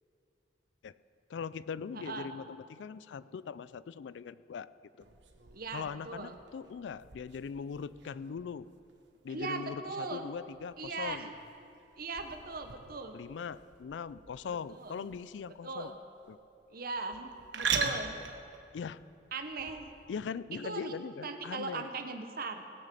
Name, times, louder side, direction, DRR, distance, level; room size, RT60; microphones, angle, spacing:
voice 1, 1.3-4.7 5.0-5.1 5.7-8.7 9.2-11.3 13.1-15.9 16.3-16.4 17.8-18.0 18.7-19.0 20.1-21.9, left 6 dB, 80° left, 17 dB, 0.3 m, -40 dB
voice 2, 1.9-2.3 5.5-6.4 9.3-10.3 10.8-11.3 12.0-13.2 14.5-15.1 15.6-16.0 16.7-18.2 19.3-19.9 20.6-22.6, right 3 dB, 55° right, 6 dB, 1.0 m, -39 dB
sound 1, 5.0-20.1, right 6 dB, 85° right, 1.0 m, -42 dB
17.5 x 6.5 x 7.6 m, 2.9 s
head